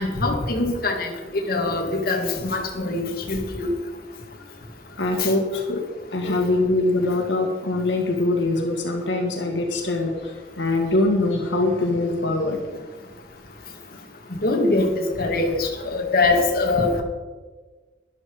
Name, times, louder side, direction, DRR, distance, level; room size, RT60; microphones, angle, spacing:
voice 1, 0.0-3.7 5.2-5.3 6.2-6.3 14.4-17.0, left 2 dB, 55° left, 0 dB, 1.9 m, -23 dB
voice 2, 5.0-5.8 6.1-12.6, left 2 dB, 80° left, 2 dB, 1.8 m, -23 dB
12.5 x 11.0 x 4.7 m, 1.3 s
head